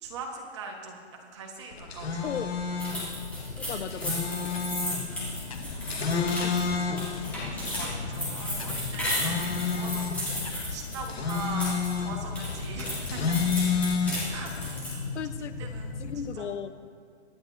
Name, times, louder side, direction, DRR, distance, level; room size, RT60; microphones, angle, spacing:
voice 1, 0.0-1.0 1.3-2.3 3.6-3.9 4.6-4.8 5.7-6.7 7.5-13.6 14.3-14.5 14.8-15.1 15.6-16.0 16.4-16.5, right 4 dB, 25° right, 1 dB, 1.2 m, -41 dB
sound 1, 1.7-14.7, left 5 dB, 60° left, 2.0 m, -31 dB
sound 2, 1.9-16.3, left 3 dB, 30° left, 0.7 m, -39 dB
sound 3, 2.8-11.9 12.2-15.0, equal, 5° left, 2.3 m, -34 dB
voice 2, 3.6-4.5 6.3-7.1 15.1-15.7 16.0-16.7, left 8 dB, 80° left, 12 dB, 0.8 m, -37 dB
24.0 x 9.7 x 2.6 m, 2.4 s
hypercardioid pair, 175°, 35 cm